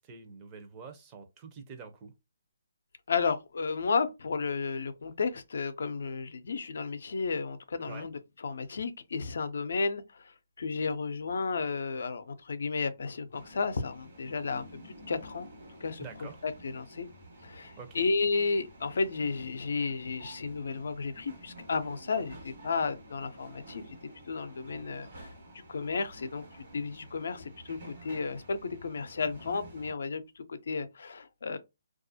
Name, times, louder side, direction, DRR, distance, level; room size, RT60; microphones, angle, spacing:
voice 1, 0.0-2.1 7.8-8.1 16.0-16.4 17.8-18.0, right 5 dB, 25° right, 0.6 m, -46 dB
voice 2, 3.1-8.1 8.4-15.5 15.8-16.0 16.4-17.1 17.4-24.0 24.3-25.3 25.7-26.4 26.7-31.6, left 4 dB, 65° left, 0.4 m, -33 dB
sound 1, 13.3-29.9, right 1 dB, 55° right, 1.2 m, -50 dB
2.3 x 2.0 x 2.7 m
hypercardioid pair, 150°, 0 cm